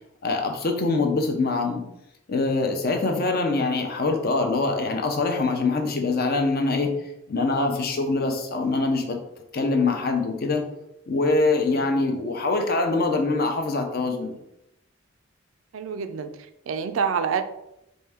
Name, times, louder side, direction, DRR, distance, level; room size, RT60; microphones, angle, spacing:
voice 1, 0.2-1.8 2.3-6.9 7.3-9.2 9.5-10.6 11.1-14.4, left 3 dB, 50° left, 4 dB, 0.6 m, -24 dB
voice 2, 15.7-17.4, right 6 dB, 80° right, 9 dB, 0.4 m, -28 dB
4.5 x 2.7 x 3.5 m, 0.84 s
head